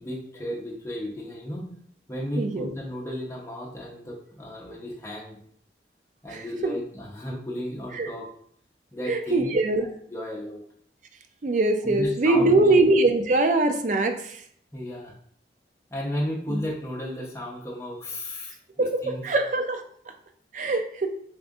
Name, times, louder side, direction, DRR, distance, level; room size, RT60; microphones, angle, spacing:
voice 1, 0.0-1.7 2.1-5.4 6.2-8.3 8.9-10.6 11.8-12.8 14.7-15.1 15.9-19.3, equal, 15° left, -4 dB, 0.7 m, -34 dB
voice 2, 2.4-2.7 6.3-6.8 8.0-8.1 9.1-9.8 11.4-14.4 16.5-16.6 18.8-19.8 20.5-21.1, right 2 dB, 45° right, 6 dB, 0.4 m, -22 dB
3.6 x 2.5 x 3.6 m, 0.63 s
head